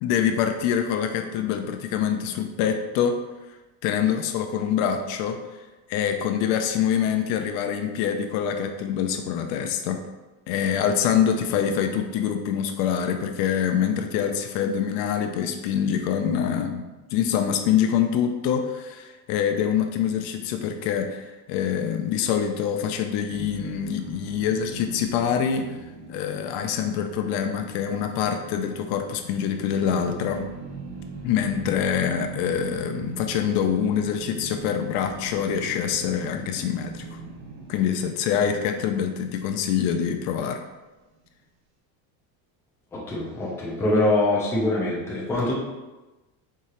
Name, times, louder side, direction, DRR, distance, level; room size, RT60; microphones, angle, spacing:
voice 1, 0.0-3.2 3.8-5.4 5.9-10.0 10.5-25.8 26.1-30.5 31.2-37.2 37.7-40.6, left 8 dB, 60° left, 6 dB, 0.5 m, -25 dB
sound 1, 23.3-40.5, right 3 dB, 75° right, 1.2 m, -40 dB
voice 2, 42.9-45.5, left 2 dB, 5° left, -6 dB, 0.4 m, -24 dB
4.8 x 3.6 x 2.9 m, 1.1 s
cardioid pair, 165°, 50 cm